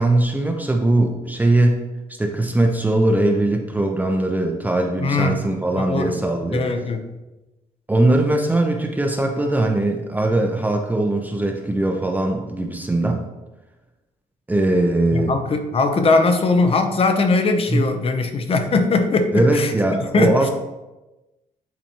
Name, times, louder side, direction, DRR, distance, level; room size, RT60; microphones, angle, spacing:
voice 1, 0.0-1.8 2.2-6.7 7.9-13.3 14.5-15.4 17.7-17.8 19.3-20.5, right 2 dB, 10° right, 2 dB, 0.6 m, -20 dB
voice 2, 5.0-5.4 5.8-6.2 6.5-7.0 15.1-19.7 20.0-20.3, left 3 dB, 40° left, 7 dB, 0.8 m, -20 dB
10.0 x 4.2 x 3.0 m, 1.1 s
cardioid pair, 125°, 14 cm